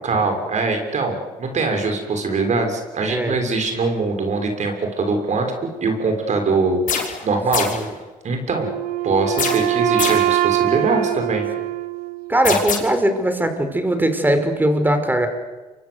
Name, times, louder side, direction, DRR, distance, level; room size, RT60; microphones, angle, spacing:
voice 1, 0.0-7.7 8.2-8.7 9.0-11.5 12.5-12.6, right 3 dB, 50° right, 5 dB, 6.7 m, -22 dB
sound 1, 6.9-7.2 7.5-7.9 9.4-10.4 12.4-12.8, left 6 dB, 60° left, 6.1 m, -24 dB
Wind instrument woodwind instrument, 8.6-12.5, right 14 dB, 85° right, 1.3 m, -22 dB
voice 2, 12.3-15.3, right 1 dB, 15° right, 8 dB, 5.3 m, -20 dB
28.0 x 24.5 x 8.2 m, 1.2 s
cardioid pair, 80°, 15 cm